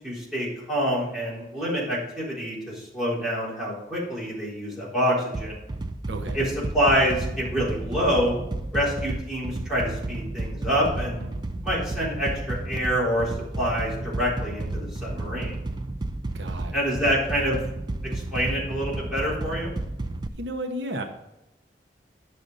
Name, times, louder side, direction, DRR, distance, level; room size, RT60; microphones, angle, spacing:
voice 1, 0.0-5.6 6.3-6.4 6.7-8.4 8.7-11.2 11.6-15.6 16.7-17.6 18.0-19.7, equal, ahead, -8 dB, 3.8 m, -26 dB
sound 1, 5.3-20.3, right 2 dB, 25° right, 0.4 m, -32 dB
voice 2, 6.1-6.5 16.3-16.9 20.4-21.0, right 1 dB, 85° right, 4 dB, 1.0 m, -33 dB
10.5 x 6.8 x 4.0 m, 0.94 s
head